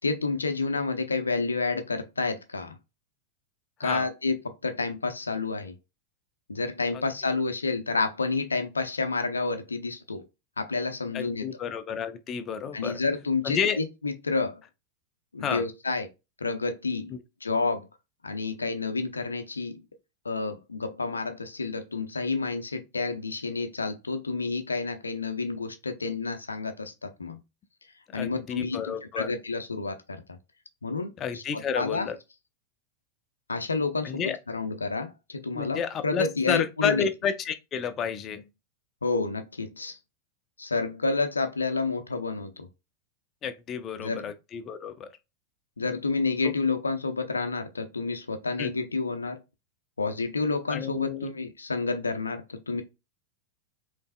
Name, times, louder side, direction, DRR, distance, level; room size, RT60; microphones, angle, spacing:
voice 1, 0.0-2.8 3.8-4.4 4.6-5.7 6.5-10.3 10.6-11.5 12.7-14.5 15.3-16.1 16.4-17.9 18.2-19.8 20.2-27.4 28.1-30.2 30.8-32.1 33.5-37.1 39.0-40.0 40.6-42.7 44.0-44.3 45.8-49.4 50.0-52.8, left 3 dB, 75° left, 0.7 m, -29 dB
voice 2, 11.1-13.0 13.4-13.8 15.4-15.6 17.1-17.2 28.1-29.3 31.2-32.2 34.0-34.4 35.5-38.5 43.4-45.1 46.4-46.5 48.6-48.7 50.7-51.3, left 7 dB, 30° left, 0.6 m, -31 dB
5.3 x 3.3 x 2.2 m
figure-of-eight pair, 90°, 0 cm